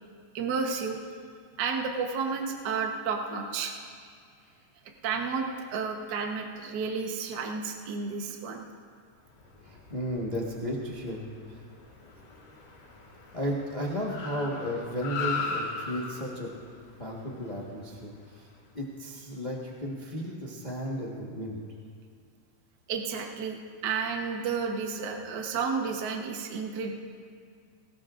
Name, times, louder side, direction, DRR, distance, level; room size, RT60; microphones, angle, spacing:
voice 1, 0.3-1.0 1.6-3.8 5.0-5.5 5.7-8.7 22.9-26.9, right 5 dB, 75° right, 2 dB, 0.9 m, -31 dB
Car, 9.2-18.8, left 4 dB, 50° left, 2.8 m, -39 dB
voice 2, 9.6-11.2 11.5-11.6 13.3-16.5 17.0-18.5 18.7-21.6, equal, 85° left, -4 dB, 0.4 m, -34 dB
19.5 x 18.0 x 2.5 m, 2.1 s
omnidirectional pair, 3.6 m